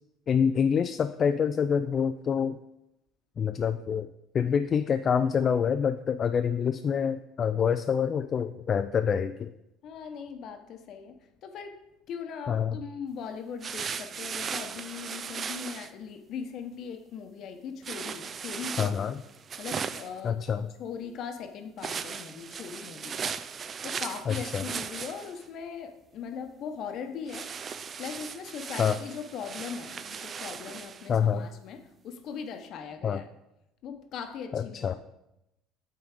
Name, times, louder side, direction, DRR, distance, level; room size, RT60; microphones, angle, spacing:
voice 1, 0.3-2.6 3.4-4.1 4.3-9.5 12.5-12.8 18.8-19.2 20.2-20.7 24.3-24.6 28.8-29.0 31.1-31.5 33.0-33.2 34.5-34.9, left 7 dB, 40° left, 9 dB, 0.3 m, -26 dB
voice 2, 9.8-11.2 11.4-11.8 12.1-19.0 19.6-20.4 20.8-27.5 28.0-33.3 33.8-34.9, left 6 dB, 55° left, 6 dB, 0.9 m, -40 dB
sound 1, 13.6-15.9 17.8-20.2 21.8-25.4 27.3-31.1, right 6 dB, 40° right, 0.4 m, -37 dB
8.2 x 3.9 x 4.9 m, 0.88 s
supercardioid pair, 90°, 0 cm